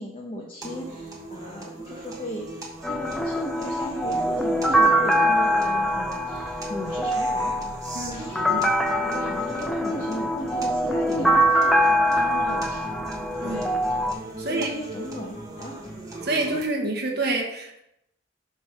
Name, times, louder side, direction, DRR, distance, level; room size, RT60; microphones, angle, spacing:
voice 1, 0.0-7.5 8.0-8.6 9.0-11.7 12.0-12.8 13.4-14.0 14.4-15.8, left 1 dB, 25° left, -2 dB, 0.8 m, -37 dB
sound 1, 0.6-16.6, right 2 dB, 15° right, 1.3 m, -39 dB
sound 2, 2.8-14.1, equal, ahead, 0.4 m, -23 dB
voice 2, 7.9-8.6 12.2-12.6 13.4-13.6 14.4-14.7 16.2-17.8, right 2 dB, 50° right, 0 dB, 1.0 m, -28 dB
8.6 x 3.2 x 5.7 m, 0.84 s
head